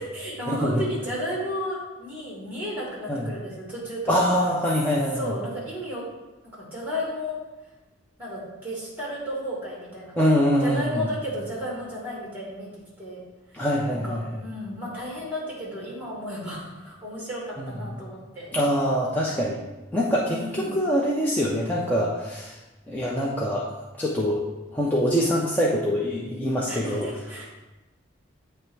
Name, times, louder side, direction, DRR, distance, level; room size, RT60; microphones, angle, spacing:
voice 1, 0.0-4.0 5.1-6.0 6.5-7.4 8.2-10.1 10.6-13.2 13.5-13.6 13.9-18.5 20.3-20.8 26.7-27.4, equal, 10° right, -5 dB, 2.1 m, -33 dB
voice 2, 4.1-5.3 10.2-11.1 13.5-14.2 17.6-17.7 18.5-19.6 19.9-22.6 22.9-23.7 24.0-24.5 24.7-27.1, equal, 10° left, -5 dB, 0.6 m, -24 dB
8.0 x 3.3 x 4.5 m, 1.1 s
head